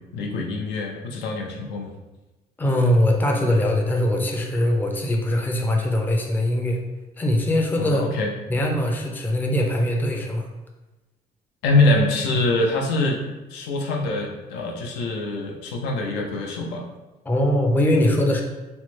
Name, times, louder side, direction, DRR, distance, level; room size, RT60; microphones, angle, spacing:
voice 1, 0.1-1.9 7.8-8.3 11.6-13.2 13.5-16.8, left 2 dB, 90° left, 1 dB, 0.5 m, -24 dB
voice 2, 2.6-6.8 7.2-8.1 8.5-10.5 17.3-18.4, left 1 dB, 10° left, 1 dB, 0.4 m, -21 dB
3.1 x 2.0 x 3.0 m, 1.1 s
cardioid pair, 110°, 17 cm